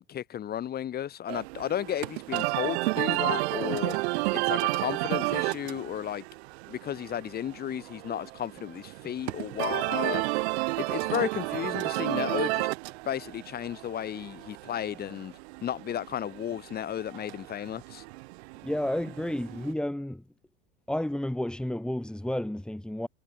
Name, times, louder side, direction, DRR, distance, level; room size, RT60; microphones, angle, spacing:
voice 1, 0.0-4.0 4.3-6.2 6.7-10.2 10.8-12.7 13.1-15.3 15.6-18.0, left 10 dB, 25° left, 3.9 m, -33 dB
sound 1, 1.3-19.7, right 23 dB, 65° right, 3.1 m, -32 dB
voice 2, 18.6-20.2 20.9-23.1, left 1 dB, ahead, 7.2 m, -31 dB
supercardioid pair, 145°, 35 cm